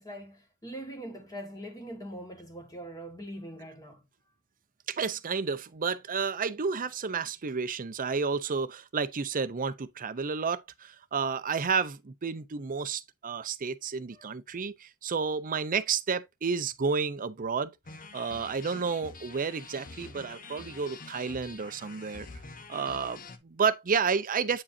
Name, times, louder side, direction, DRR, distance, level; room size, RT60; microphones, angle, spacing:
voice 1, 0.0-4.0 14.1-14.3, right 1 dB, 15° left, 1.6 m, -42 dB
voice 2, 4.9-17.7 18.1-22.3 22.7-24.6, right 5 dB, 40° right, 0.6 m, -31 dB
sound 1, 17.8-23.4, left 4 dB, 40° left, 0.8 m, -47 dB
8.5 x 4.9 x 2.6 m
head